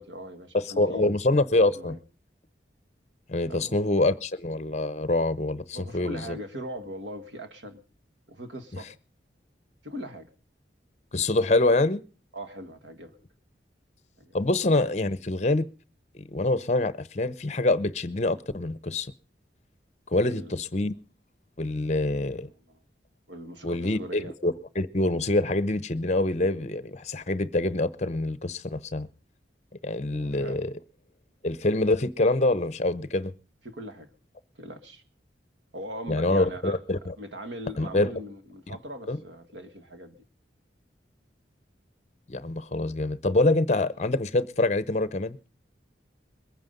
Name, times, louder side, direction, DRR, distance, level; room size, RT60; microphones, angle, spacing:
voice 1, 0.0-1.1 1.7-2.0 3.5-3.9 5.7-7.8 8.3-8.9 9.8-10.3 12.3-13.1 14.2-14.4 20.2-20.6 22.7-22.8 23.3-24.3 30.1-30.7 33.6-34.1 34.6-35.0 35.7-36.8 37.2-40.2, equal, 75° right, 1.7 m, -40 dB
voice 2, 0.8-2.0 3.3-6.4 11.1-12.0 14.3-15.7 16.1-19.1 20.1-20.9 21.6-22.5 23.6-29.1 29.8-30.7 31.4-33.3 36.1-37.2 37.8-38.1 38.7-38.8 39.1-39.2 42.3-45.4, left 2 dB, 35° left, 0.7 m, -25 dB
21.5 x 9.6 x 5.3 m
head